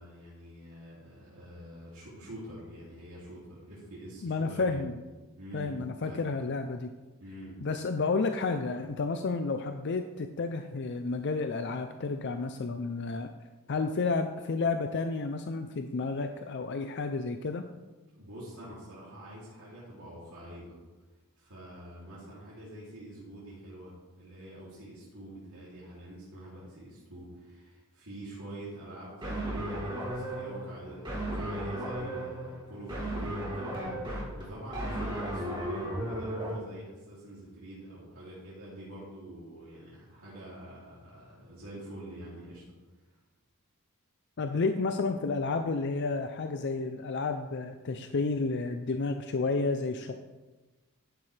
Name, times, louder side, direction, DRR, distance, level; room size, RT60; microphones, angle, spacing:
voice 1, 0.0-4.8 5.4-6.2 7.2-7.6 18.1-20.7 21.4-34.0 34.3-42.6, right 1 dB, 75° right, -9 dB, 3.0 m, -46 dB
voice 2, 4.2-4.9 5.5-6.9 7.6-13.3 13.7-17.6 44.4-50.2, left 3 dB, 50° left, 7 dB, 0.5 m, -31 dB
sound 1, 29.2-36.6, right 1 dB, 20° right, 2.4 m, -35 dB
11.5 x 9.6 x 3.3 m, 1.2 s
head